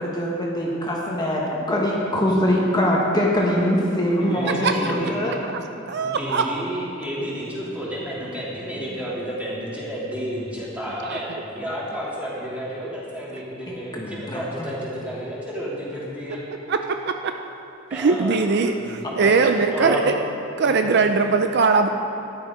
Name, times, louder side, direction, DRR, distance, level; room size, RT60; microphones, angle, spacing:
voice 1, 0.0-5.3 13.7-14.4 19.0-19.3, equal, 20° left, -3 dB, 1.3 m, -23 dB
voice 2, 4.2-5.3 6.0-16.4 17.9-19.0 19.3-20.0 20.6-20.9, equal, 5° right, -7 dB, 3.0 m, -31 dB
voice 3, 5.3-5.6 5.9-6.4 11.0-11.2 16.7-17.0 17.9-20.2 20.6-21.9, right 4 dB, 55° right, 6 dB, 0.5 m, -21 dB
13.5 x 10.0 x 5.0 m, 2.8 s
head